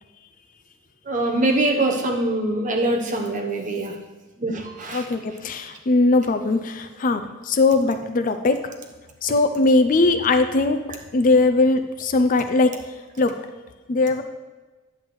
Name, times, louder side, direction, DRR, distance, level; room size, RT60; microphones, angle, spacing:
voice 1, 1.1-3.9 4.4-5.0, right 2 dB, 40° right, 2 dB, 1.0 m, -23 dB
voice 2, 4.9-8.7 9.2-10.8 11.1-12.7 13.2-13.4 13.9-14.2, left 3 dB, 40° left, 9 dB, 0.4 m, -20 dB
9.7 x 7.8 x 3.1 m, 1.2 s
head